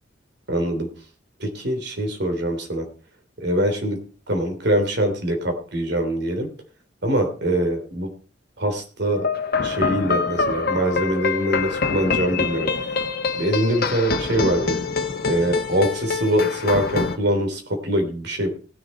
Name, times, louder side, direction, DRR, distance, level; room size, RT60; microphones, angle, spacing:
voice 1, 0.5-0.9 1.4-2.8 3.4-4.0 4.3-6.5 7.0-8.1 8.6-9.2 9.6-12.7 13.3-14.9 15.3-18.5, right 1 dB, 65° right, 5 dB, 3.2 m, -23 dB
sound 1, 9.1-17.2, left 4 dB, 55° left, 1.3 m, -25 dB
18.5 x 6.9 x 4.4 m, 0.38 s
head